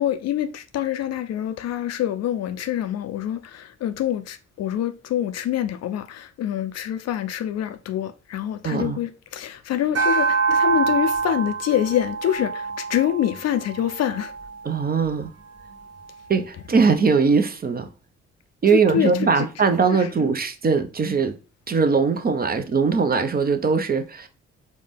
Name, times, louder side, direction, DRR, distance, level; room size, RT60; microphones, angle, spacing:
voice 1, 0.0-14.3 18.7-19.1 19.9-20.3, left 11 dB, 50° left, 0.4 m, -26 dB
voice 2, 8.6-9.0 14.6-15.3 16.3-17.9 18.6-21.3 21.7-24.3, right 5 dB, 25° right, 0.5 m, -21 dB
sound 1, 9.9-14.5, right 5 dB, 45° right, 1.1 m, -25 dB
4.8 x 2.1 x 3.4 m
hypercardioid pair, 40°, 35 cm